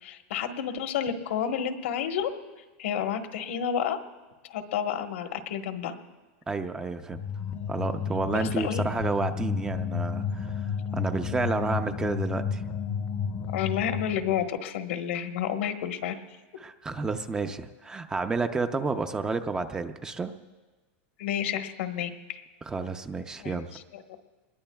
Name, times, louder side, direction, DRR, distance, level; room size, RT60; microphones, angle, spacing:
voice 1, 0.0-2.3 2.8-4.0 4.4-6.0 8.3-8.8 13.5-16.2 21.2-22.4 23.4-24.2, left 9 dB, 80° left, 6 dB, 1.2 m, -30 dB
voice 2, 6.5-7.2 7.7-12.6 16.6-20.3 22.7-23.7, right 4 dB, 10° right, 8 dB, 0.5 m, -30 dB
sound 1, 7.1-14.5, left 6 dB, 30° left, 0.6 m, -32 dB
23.5 x 20.5 x 2.3 m, 1.3 s
supercardioid pair, 160°, 7 cm